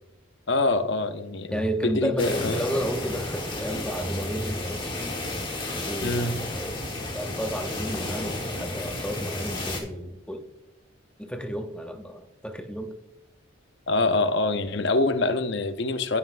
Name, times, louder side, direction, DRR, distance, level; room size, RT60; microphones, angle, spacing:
voice 1, 0.5-2.6 6.0-6.4 13.9-16.2, left 2 dB, 55° left, 0.6 m, -25 dB
voice 2, 1.5-4.9 5.9-6.3 6.5-6.8 7.1-10.5 11.2-12.9, equal, 5° left, 0.5 m, -32 dB
sound 1, 2.2-9.8, left 2 dB, 25° left, 1.2 m, -32 dB
15.0 x 5.5 x 2.5 m
head